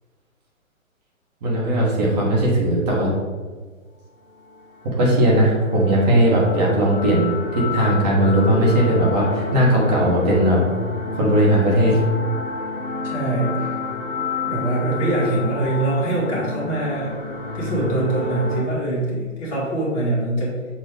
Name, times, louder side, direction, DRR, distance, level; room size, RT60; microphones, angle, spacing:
voice 1, 1.4-3.1 5.0-10.6 11.2-12.0, right 1 dB, 30° right, -5 dB, 1.4 m, -18 dB
sound 1, 4.4-18.6, left 3 dB, 10° right, 1.7 m, -30 dB
voice 2, 13.0-13.7 14.5-17.2 17.5-20.5, right 2 dB, 25° left, -6 dB, 1.8 m, -23 dB
6.7 x 2.7 x 5.1 m, 1.5 s
hypercardioid pair, 145°, 41 cm